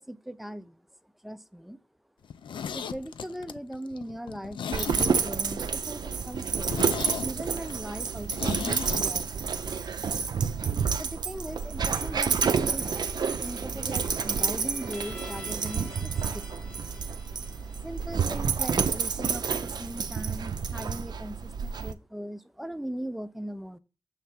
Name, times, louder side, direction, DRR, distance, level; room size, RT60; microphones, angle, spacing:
voice 1, 0.0-1.8 2.7-6.8 7.2-9.4 11.0-13.1 13.4-16.7 17.8-23.8, equal, ahead, 0.4 m, -39 dB
Zipper (clothing), 2.2-5.5 5.8-5.9 6.3-6.4 6.6-9.1 9.3-9.4, left 7 dB, 85° left, 0.5 m, -36 dB
Dog, 4.7-21.9, right 6 dB, 60° right, 0.5 m, -29 dB
sound 1, 11.5-20.3, left 2 dB, 15° left, 0.9 m, -49 dB
7.2 x 3.4 x 5.8 m
wide cardioid pair, 175°, 8 cm